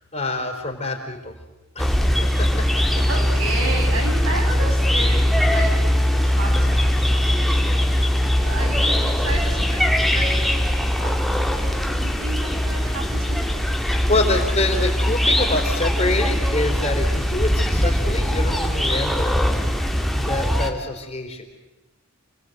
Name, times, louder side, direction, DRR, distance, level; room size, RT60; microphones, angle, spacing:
voice 1, 0.1-1.3 1.8-2.1 2.4-3.0 14.0-19.3 20.1-21.4, left 2 dB, 30° left, 4 dB, 4.1 m, -26 dB
sound 1, 1.8-20.7, equal, ahead, 1.8 m, -21 dB
voice 2, 3.1-13.5, right 2 dB, 70° right, 0 dB, 7.3 m, -33 dB
29.0 x 20.0 x 8.0 m, 1.0 s
head